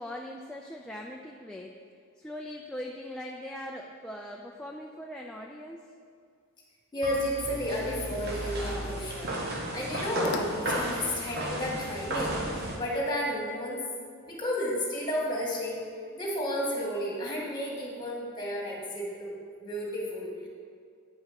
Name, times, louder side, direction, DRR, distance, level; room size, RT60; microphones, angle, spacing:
voice 1, 0.0-1.8 2.2-5.9, left 1 dB, 5° left, -1 dB, 0.4 m, -40 dB
voice 2, 6.9-9.4 9.7-13.8 14.2-15.8 16.1-19.3 19.6-20.5, equal, 20° left, -4 dB, 2.1 m, -32 dB
sound 1, 7.0-12.8, right 1 dB, 50° right, 1.2 m, -34 dB
sound 2, 7.4-13.4, left 4 dB, 55° left, 0.6 m, -47 dB
9.1 x 5.6 x 5.8 m, 2.2 s
head